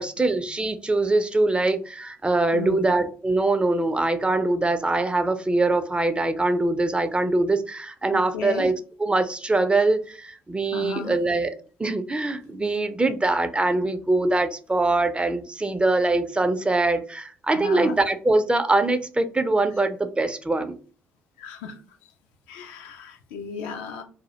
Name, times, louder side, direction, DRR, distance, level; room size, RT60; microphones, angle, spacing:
voice 1, 0.0-11.5 11.8-20.8, right 2 dB, 15° right, 0.4 m, -23 dB
voice 2, 2.5-2.9 8.1-8.7 10.7-11.2 17.5-18.0 21.4-22.1 22.5-24.0, left 5 dB, 75° left, 0.4 m, -35 dB
2.2 x 2.0 x 2.7 m
hypercardioid pair, 50°, 6 cm